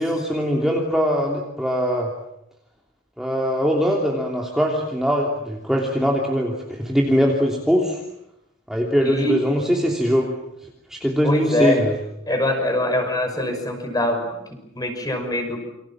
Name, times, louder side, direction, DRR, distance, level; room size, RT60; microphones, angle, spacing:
voice 1, 0.0-2.1 3.2-8.0 8.7-10.3 10.9-12.0, equal, ahead, -1 dB, 3.1 m, -21 dB
voice 2, 9.0-9.4 11.2-11.8 12.3-15.6, left 1 dB, 20° left, 5 dB, 6.0 m, -23 dB
29.0 x 25.5 x 7.5 m, 0.81 s
head